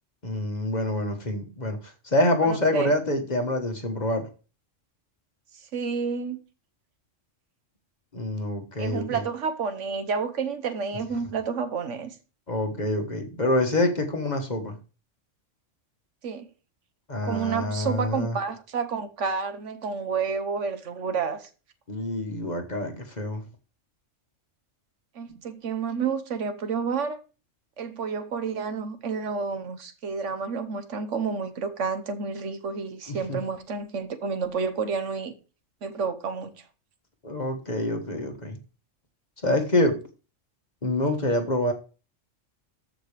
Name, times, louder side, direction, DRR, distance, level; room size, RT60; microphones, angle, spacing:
voice 1, 0.2-4.3 8.1-9.2 12.5-14.8 17.1-18.4 21.9-23.4 33.1-33.4 37.2-38.6 39.4-40.0 40.8-41.7, left 1 dB, 35° left, 1.4 m, -26 dB
voice 2, 2.4-2.9 5.7-6.4 8.8-12.2 16.2-16.5 17.2-21.5 25.1-27.2 27.8-35.3 35.8-36.5, right 5 dB, 70° right, 1.3 m, -30 dB
14.0 x 5.0 x 3.3 m
omnidirectional pair, 1.3 m